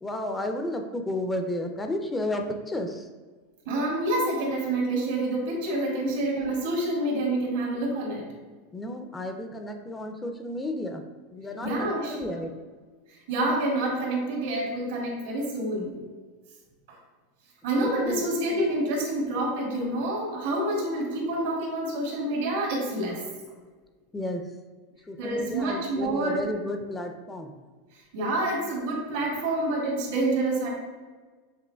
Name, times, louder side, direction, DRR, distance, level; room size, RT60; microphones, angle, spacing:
voice 1, 0.0-3.1 8.7-11.0 11.3-12.5 17.8-18.3 24.1-24.5 25.1-27.6, left 1 dB, 10° left, 5 dB, 0.3 m, -32 dB
voice 2, 3.6-8.2 11.6-12.3 13.1-15.9 17.6-23.2 25.2-26.4 28.1-30.7, right 1 dB, 80° right, -2 dB, 1.5 m, -27 dB
6.1 x 3.0 x 2.2 m, 1.4 s
supercardioid pair, 140°, 0 cm